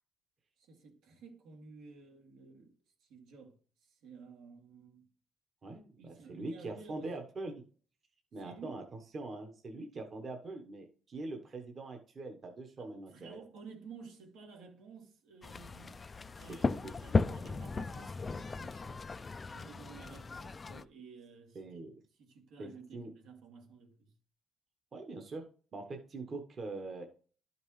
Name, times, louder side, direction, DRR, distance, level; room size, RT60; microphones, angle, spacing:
voice 1, 0.6-3.6 3.8-5.1 6.0-7.1 8.4-8.8 12.8-16.1 16.4-19.0 19.5-21.8 22.2-24.1, right 4 dB, 90° right, 2.5 m, -53 dB
voice 2, 5.6-7.6 8.3-8.8 9.1-13.4 16.6-16.8 21.5-22.0 22.6-23.1 24.9-27.0, right 2 dB, 30° right, 1.0 m, -43 dB
sound 1, 15.4-20.9, left 4 dB, 20° left, 0.3 m, -36 dB
12.0 x 5.3 x 3.1 m
cardioid pair, 170°, 0 cm